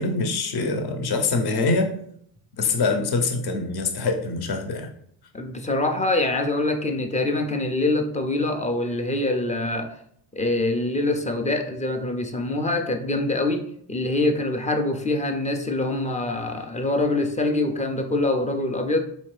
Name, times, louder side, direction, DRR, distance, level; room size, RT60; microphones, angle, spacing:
voice 1, 0.0-1.9 2.6-4.9, left 3 dB, 50° left, 4 dB, 0.8 m, -24 dB
voice 2, 5.3-10.0 10.3-19.0, left 2 dB, 15° left, 5 dB, 0.4 m, -24 dB
4.3 x 2.8 x 3.2 m, 0.68 s
cardioid pair, 95°, 48 cm